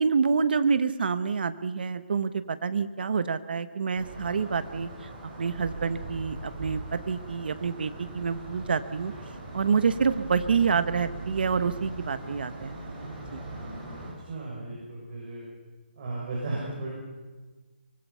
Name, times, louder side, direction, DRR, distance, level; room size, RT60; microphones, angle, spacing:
voice 1, 0.0-4.9 5.4-9.1 9.5-12.7 13.0-13.4, right 5 dB, 60° right, 12 dB, 1.2 m, -27 dB
sound 1, 3.9-14.1, right 2 dB, 15° right, 6.0 m, -40 dB
voice 2, 14.3-15.4 16.0-16.9, right 2 dB, 40° right, -5 dB, 6.5 m, -35 dB
24.0 x 21.0 x 5.7 m, 1.3 s
hypercardioid pair, 165°, 6 cm